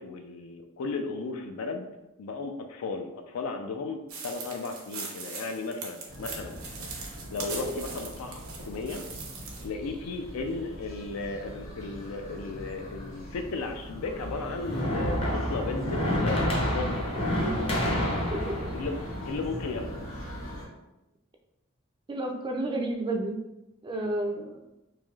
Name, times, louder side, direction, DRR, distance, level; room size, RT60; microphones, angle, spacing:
voice 1, 0.0-1.9 2.2-6.6 6.9-9.0 9.6-16.5 16.7-17.3 18.7-19.0 19.3-20.1, left 3 dB, 90° left, 5 dB, 0.4 m, -35 dB
sound 1, 4.1-9.7, right 4 dB, 80° right, 0.7 m, -40 dB
sound 2, 6.1-20.6, equal, 60° left, 1.4 m, -42 dB
sound 3, 14.2-20.4, equal, 25° left, 0.5 m, -29 dB
voice 2, 22.1-23.4 23.8-24.7, right 1 dB, 20° right, 3 dB, 0.3 m, -31 dB
3.3 x 2.5 x 2.3 m, 0.96 s
head